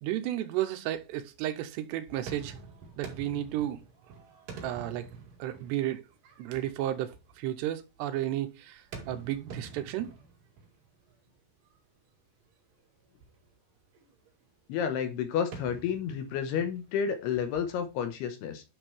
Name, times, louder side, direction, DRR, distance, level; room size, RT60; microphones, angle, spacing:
voice 1, 0.0-2.6 3.0-3.8 4.6-5.1 5.4-6.0 6.4-7.1 7.4-8.8 9.1-10.1, right 13 dB, 85° right, 2.8 m, -32 dB
sound 1, 0.9-1.5 1.8-7.8 8.7-11.3 11.6-11.8 12.4-12.5 12.8-12.9 13.2-13.5 13.9-14.5 15.3-18.1, right 5 dB, 55° right, 4.1 m, -48 dB
voice 2, 14.7-18.6, left 8 dB, 75° left, 2.9 m, -31 dB
10.0 x 5.9 x 3.1 m
omnidirectional pair, 5.0 m